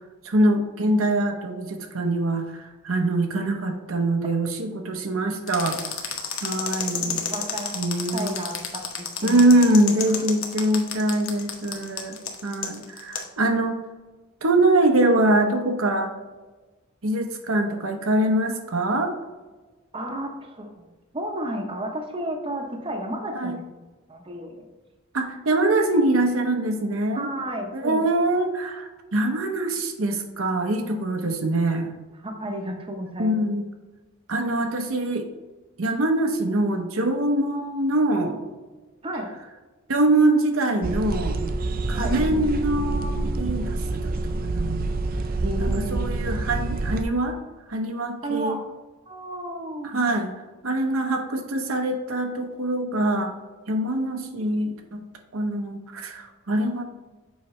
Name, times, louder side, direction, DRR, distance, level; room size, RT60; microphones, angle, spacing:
voice 1, 0.2-5.8 6.4-7.2 7.8-8.4 9.2-12.2 12.4-13.8 14.4-16.1 17.0-19.1 23.4-23.6 25.1-27.3 27.7-31.9 33.2-33.6 34.3-35.3 35.8-38.4 39.9-41.4 41.9-44.9 45.6-47.4 47.7-48.6 49.9-50.3 50.6-53.3 53.7-55.0 55.3-56.8, right 1 dB, 75° right, 4 dB, 0.9 m, -23 dB
sound 1, 5.5-13.3, left 7 dB, 70° left, 1.1 m, -30 dB
voice 2, 7.3-7.8 8.1-9.5 19.9-20.8 21.1-23.8 24.1-24.7 27.1-28.0 32.2-33.3 39.0-39.3 41.9-42.2 45.4-46.1 48.2-48.6 49.1-50.1, right 1 dB, 25° right, 2 dB, 0.9 m, -32 dB
sound 2, 40.8-47.0, right 2 dB, 45° right, 0.5 m, -27 dB
7.2 x 4.9 x 3.2 m, 1.2 s
head